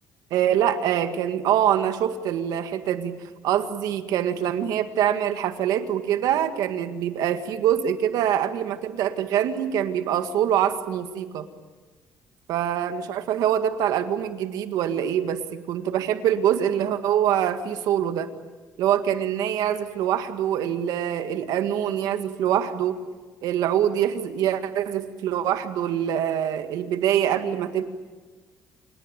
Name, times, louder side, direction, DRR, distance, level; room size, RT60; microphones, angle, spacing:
voice 1, 0.3-3.2 3.4-11.5 12.5-18.3 18.8-23.0 23.4-27.8, right 10 dB, 80° right, 8 dB, 1.8 m, -24 dB
28.5 x 19.0 x 9.1 m, 1.4 s
cardioid pair, 155°, 6 cm